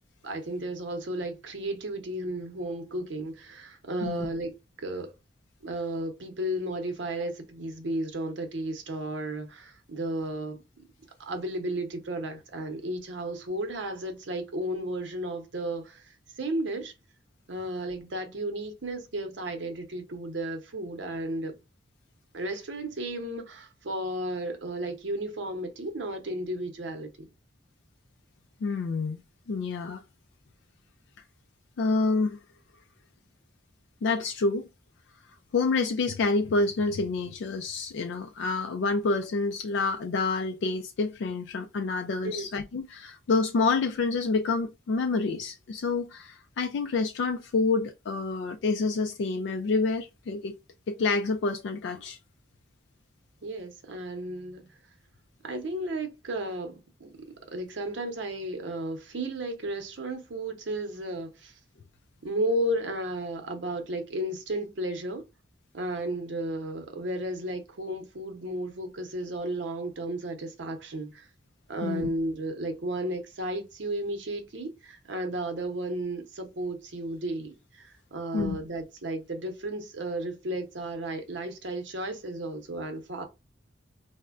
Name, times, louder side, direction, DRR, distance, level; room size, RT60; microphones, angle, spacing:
voice 1, 0.2-4.5 4.8-5.1 5.6-10.8 11.2-16.9 17.5-21.5 22.3-27.3 42.2-42.5 53.4-54.7 55.4-61.5 62.2-65.2 65.7-71.3 71.7-83.2, right 1 dB, 75° right, 0.7 m, -33 dB
voice 2, 28.6-29.2 29.5-30.0 31.8-32.4 34.0-34.7 35.5-50.5 50.9-52.2 71.8-72.1 78.3-78.6, left 3 dB, 65° left, 0.3 m, -28 dB
4.2 x 2.1 x 2.4 m
head